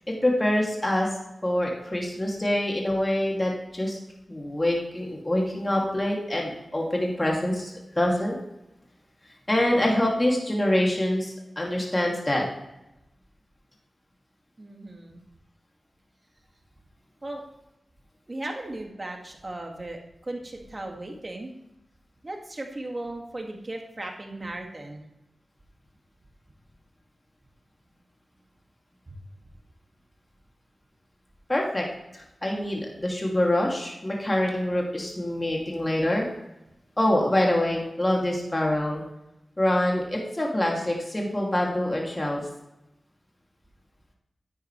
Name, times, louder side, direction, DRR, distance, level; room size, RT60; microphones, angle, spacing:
voice 1, 0.2-1.1 1.4-4.0 4.3-8.3 9.5-12.4 31.5-31.8 32.1-36.3 37.0-39.0 39.6-42.4, left 1 dB, 25° left, -1 dB, 2.7 m, -25 dB
voice 2, 14.6-15.2 17.2-17.4 18.3-20.0 20.3-21.5 22.2-25.0, right 2 dB, 40° right, 2 dB, 2.2 m, -36 dB
10.5 x 8.9 x 3.3 m, 0.90 s
cardioid pair, 40°, 0 cm